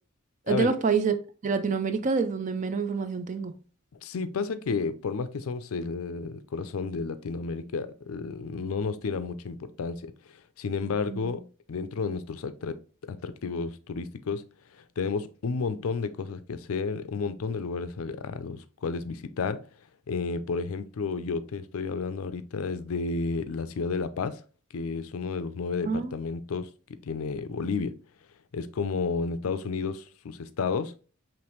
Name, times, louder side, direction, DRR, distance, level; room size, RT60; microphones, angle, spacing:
voice 1, 0.5-1.2 1.4-3.5 11.1-11.4 25.9-26.1, right 5 dB, 35° right, 0.4 m, -27 dB
voice 2, 4.0-11.4 11.7-12.8 13.1-14.4 14.8-19.6 20.1-24.4 24.7-26.7 27.0-28.0 28.5-30.9, left 4 dB, 85° left, 0.4 m, -31 dB
5.0 x 3.1 x 3.0 m
head